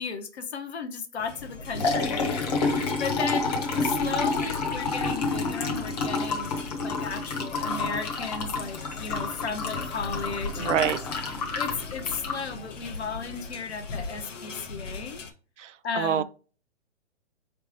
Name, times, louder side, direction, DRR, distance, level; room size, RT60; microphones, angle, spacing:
voice 1, 0.0-3.5 3.8-6.5 6.8-10.9 11.5-15.2 15.8-16.2, left 5 dB, 60° left, 1.0 m, -35 dB
sound 1, 1.2-15.3, left 4 dB, 90° left, 1.1 m, -41 dB
Liquid, 1.4-13.3, left 3 dB, 35° left, 0.9 m, -29 dB
voice 2, 10.6-11.0 15.6-16.2, right 9 dB, 80° right, 0.6 m, -26 dB
4.3 x 3.3 x 3.4 m
hypercardioid pair, 160°, 36 cm